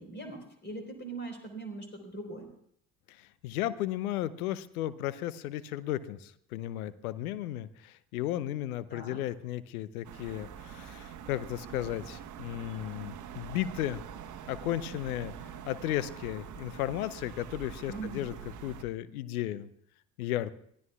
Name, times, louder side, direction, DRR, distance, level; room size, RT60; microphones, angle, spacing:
voice 1, 0.0-2.5 8.9-9.2 17.9-18.3, right 2 dB, 25° left, 4 dB, 4.3 m, -41 dB
voice 2, 3.2-14.0 14.5-15.3 15.7-18.3 18.6-19.7 20.2-20.5, left 13 dB, 70° left, 17 dB, 0.8 m, -34 dB
sound 1, 10.0-18.8, right 8 dB, 40° right, 1.2 m, -45 dB
23.0 x 15.5 x 2.4 m, 0.66 s
figure-of-eight pair, 55°, 45 cm